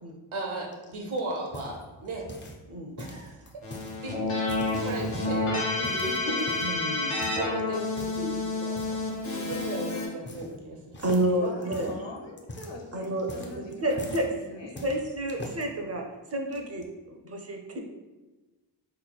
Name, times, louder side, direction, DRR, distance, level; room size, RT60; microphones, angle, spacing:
voice 1, 0.3-2.3 3.0-3.4 4.0-6.5 7.1-11.0, right 1 dB, 80° right, 0 dB, 0.9 m, -36 dB
sound 1, 0.7-2.7 3.0-4.0 4.3-5.4 5.8-6.8 7.2-7.5 7.9-8.3 8.8-9.1 9.5-9.8 10.0-10.7 10.9-14.3 14.8-15.6 16.3-16.8, equal, 25° left, 0.3 m, -42 dB
Keyboard (musical), 3.6-10.1, left 2 dB, 85° left, 1.0 m, -30 dB
voice 2, 6.6-7.2 11.0-11.9 12.9-13.3 13.6-14.2 14.8-16.0 16.3-17.8, right 1 dB, 30° right, 2 dB, 0.5 m, -30 dB
voice 3, 11.2-14.8, left 2 dB, 60° left, 0 dB, 0.8 m, -42 dB
3.6 x 3.1 x 2.3 m, 1.2 s
wide cardioid pair, 95°, 49 cm